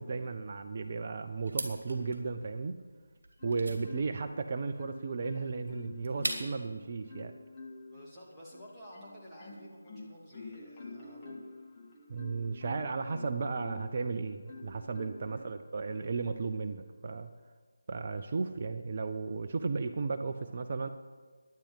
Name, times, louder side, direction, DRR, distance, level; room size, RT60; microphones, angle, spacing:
voice 1, 0.0-2.8 3.4-7.3 12.1-17.3 17.9-20.9, right 4 dB, 35° right, 8 dB, 0.6 m, -35 dB
sound 1, 1.5-6.7, right 1 dB, 65° right, 2.6 m, -41 dB
Marimba xylophone, 3.4-4.4 4.8-6.6 7.1-8.0 8.5-14.0 14.5-15.3 15.9-16.1, left 3 dB, 20° left, 2.0 m, -48 dB
voice 2, 7.9-11.4 15.2-15.5, equal, ahead, -11 dB, 2.6 m, -52 dB
11.5 x 10.0 x 7.7 m, 1.4 s
figure-of-eight pair, 155°, 0 cm